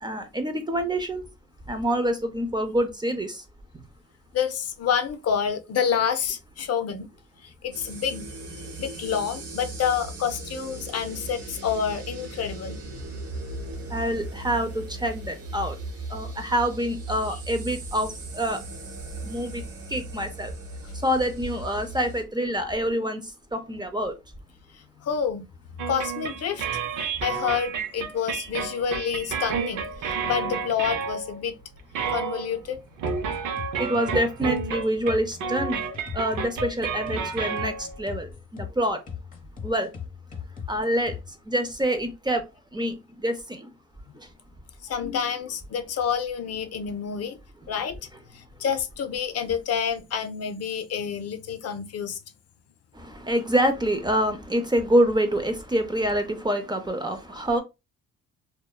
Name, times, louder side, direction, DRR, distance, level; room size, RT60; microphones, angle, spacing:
voice 1, 0.0-1.2 1.7-3.4 3.7-3.8 13.9-15.8 16.1-18.6 19.2-19.6 19.9-20.5 20.9-24.1 33.8-35.9 36.1-39.0 39.6-39.9 40.7-42.4 42.7-43.7 44.1-44.3 52.9-57.6, right 1 dB, 15° right, 0.5 m, -26 dB
voice 2, 4.3-7.1 7.4-8.3 8.8-12.8 24.7-25.5 25.9-26.7 27.2-31.6 32.1-32.8 44.8-47.4 47.7-52.2, left 7 dB, 55° left, 0.5 m, -28 dB
sound 1, 7.7-22.2, right 2 dB, 50° right, 0.8 m, -38 dB
sound 2, 25.8-31.5 31.8-38.0, right 6 dB, 80° right, 0.6 m, -31 dB
sound 3, 33.1-41.3, left 7 dB, 30° left, 0.8 m, -38 dB
2.7 x 2.2 x 2.2 m
cardioid pair, 90°, 30 cm